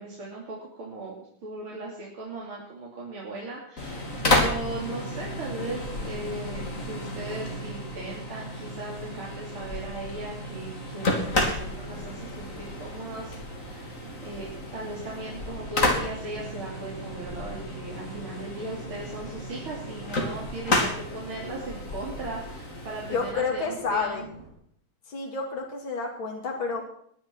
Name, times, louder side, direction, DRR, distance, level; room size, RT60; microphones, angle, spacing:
voice 1, 0.0-24.4, right 2 dB, 85° right, -4 dB, 4.0 m, -38 dB
sound 1, 3.8-23.3, left 1 dB, 40° left, 3.3 m, -31 dB
sound 2, 11.1-24.5, right 2 dB, 65° right, 7.5 m, -47 dB
voice 2, 23.1-24.3 25.1-26.8, left 4 dB, 70° left, 0 dB, 3.2 m, -29 dB
20.5 x 10.5 x 6.2 m, 0.66 s
omnidirectional pair, 2.2 m